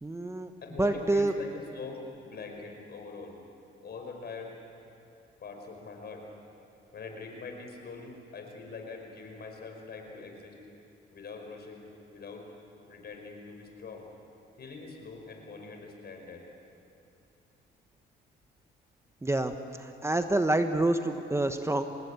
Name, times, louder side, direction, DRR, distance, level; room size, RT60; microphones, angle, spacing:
voice 1, 0.0-0.5 0.8-1.3 19.2-21.9, right 2 dB, 15° right, 7 dB, 1.2 m, -27 dB
voice 2, 0.6-3.4 3.8-4.5 5.4-6.3 6.9-10.6 11.1-12.5 12.9-14.1 14.6-16.5, left 4 dB, 55° left, 2 dB, 5.5 m, -43 dB
26.0 x 19.5 x 8.3 m, 2.7 s
cardioid pair, 90°, 20 cm